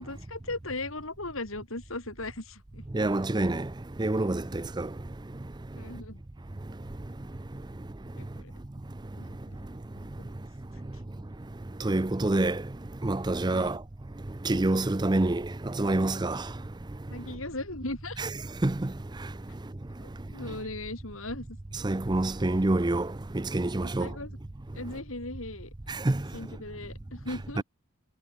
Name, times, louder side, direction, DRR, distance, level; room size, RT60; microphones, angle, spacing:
voice 1, 0.0-2.9 5.8-6.2 8.2-8.5 9.2-9.7 10.0-10.3 13.5-13.8 17.1-18.2 20.0-21.5 23.8-24.4 24.7-25.7 26.3-27.6, left 2 dB, 70° left, 5.1 m, -38 dB
voice 2, 2.9-5.8 6.6-7.3 7.5-8.4 9.2-10.5 10.8-11.3 11.6-13.8 14.2-17.2 18.6-19.7 20.2-20.3 21.8-24.2 25.9-26.4 27.6-27.7, right 2 dB, 20° right, 0.5 m, -29 dB
head